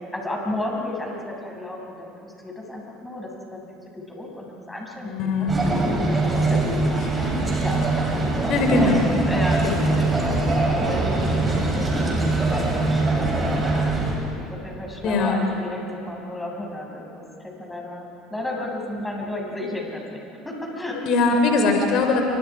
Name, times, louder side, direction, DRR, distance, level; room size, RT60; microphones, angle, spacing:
voice 1, 0.1-3.6 4.1-6.6 6.9-7.9 8.2-8.9 9.3-13.0 13.6-13.9 14.5-21.0 21.3-21.4, left 1 dB, 10° left, -1 dB, 7.6 m, -33 dB
voice 2, 5.0-5.7 7.0-7.1 8.5-9.0 9.6-10.0 15.0-15.3 21.0-22.2, left 3 dB, 55° left, 3 dB, 4.0 m, -21 dB
sound 1, 5.5-14.1, right 2 dB, 20° right, 7.7 m, -22 dB
29.5 x 25.5 x 5.0 m, 2.9 s
hypercardioid pair, 65°, 0 cm